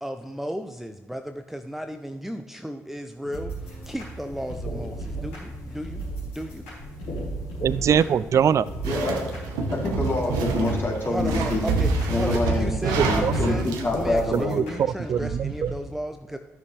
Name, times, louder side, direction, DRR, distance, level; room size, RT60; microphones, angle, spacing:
voice 1, 0.0-3.5 3.9-6.6 11.1-16.4, equal, 5° right, 0.6 m, -34 dB
sound 1, 3.2-15.7, right 3 dB, 85° left, 3.1 m, -36 dB
sound 2, 3.6-14.4, left 1 dB, 60° left, 2.9 m, -41 dB
voice 2, 7.6-8.6 12.8-13.4 14.3-15.7, right 8 dB, 50° right, 0.3 m, -23 dB
voice 3, 8.8-9.2 9.7-11.6 12.1-12.7 13.0-14.6, left 2 dB, 35° left, 3.0 m, -26 dB
sound 3, 8.8-13.9, right 3 dB, 75° right, 1.0 m, -27 dB
13.5 x 6.8 x 3.3 m
hypercardioid pair, 40°, 7 cm